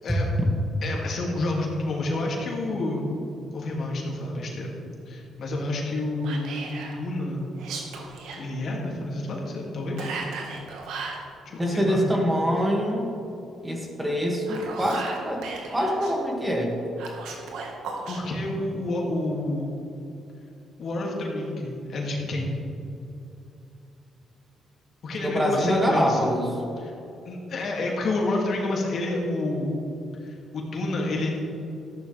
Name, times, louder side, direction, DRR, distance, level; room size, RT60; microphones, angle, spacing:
voice 1, 0.8-3.1 3.5-4.8 5.1-7.4 8.4-10.2 11.5-12.1 18.1-19.7 20.8-22.5 25.0-26.3 26.8-26.9 27.2-29.8 30.2-31.3, left 2 dB, 60° left, -2 dB, 2.6 m, -29 dB
Whispering, 6.2-7.0 7.6-8.4 10.0-11.2 14.3-16.1 17.0-18.2, right 4 dB, 85° right, 1.7 m, -36 dB
voice 2, 11.6-13.1 13.6-15.4 15.7-16.8 25.2-26.6, equal, 15° right, -1 dB, 2.3 m, -24 dB
14.0 x 11.0 x 3.5 m, 2.7 s
cardioid pair, 90°, 0 cm